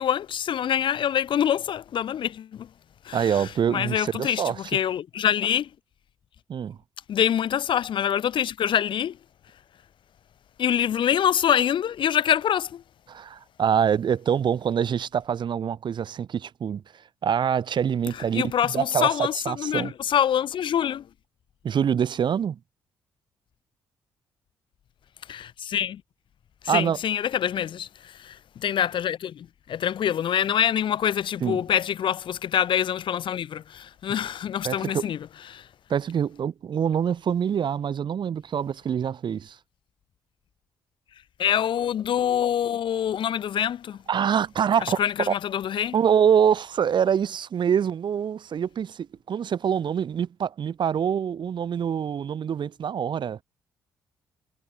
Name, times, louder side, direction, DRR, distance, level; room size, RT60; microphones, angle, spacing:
voice 1, 0.0-2.7 3.0-5.7 7.1-9.2 10.6-12.8 18.1-21.1 25.3-26.0 26.6-35.7 41.4-44.0 44.8-45.9, left 9 dB, 60° left, 2.4 m, -25 dB
voice 2, 3.1-4.6 6.5-6.8 13.1-16.8 17.2-18.4 18.7-19.9 21.6-22.6 26.7-27.0 31.4-31.6 34.6-35.0 35.9-39.6 44.1-45.0 45.3-45.4 45.9-53.4, right 8 dB, 55° right, 2.0 m, -25 dB
hypercardioid pair, 45°, 9 cm